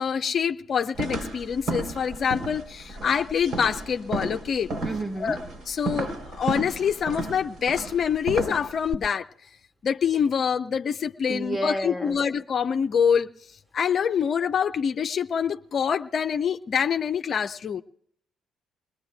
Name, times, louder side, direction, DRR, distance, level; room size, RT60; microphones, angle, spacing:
voice 1, 0.0-4.7 5.2-5.4 5.7-9.3 9.8-13.3 13.7-17.8, left 7 dB, 55° left, 8 dB, 0.5 m, -25 dB
sound 1, 1.0-8.9, right 2 dB, 60° right, 3.7 m, -33 dB
voice 2, 4.8-5.4 11.3-12.2, right 1 dB, 15° right, 6 dB, 1.5 m, -30 dB
26.0 x 19.5 x 2.3 m, 0.65 s
hypercardioid pair, 55°, 0 cm